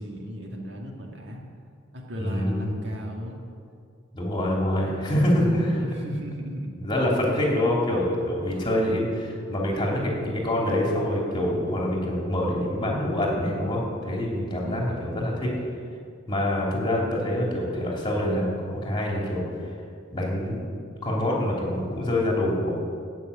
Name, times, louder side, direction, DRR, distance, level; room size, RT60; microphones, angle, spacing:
voice 1, 0.0-1.4 1.9-3.4 4.7-6.8 8.5-9.0 14.6-15.2, equal, 60° right, 0 dB, 2.0 m, -36 dB
voice 2, 2.2-2.7 4.1-5.8 6.8-15.5 16.3-19.4 20.1-20.6 21.0-22.7, left 1 dB, 25° left, -3 dB, 3.0 m, -25 dB
16.5 x 6.3 x 8.5 m, 2.3 s
head